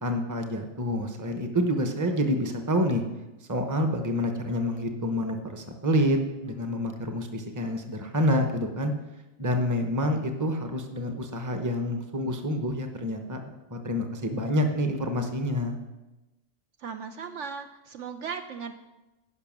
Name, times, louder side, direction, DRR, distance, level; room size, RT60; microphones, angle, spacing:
voice 1, 0.0-3.0 3.5-8.9 9.4-13.4 13.7-15.8, equal, 15° right, 5 dB, 0.8 m, -27 dB
voice 2, 16.8-18.7, right 6 dB, 65° right, 7 dB, 0.9 m, -37 dB
11.0 x 5.8 x 7.3 m, 1.0 s
omnidirectional pair, 1.5 m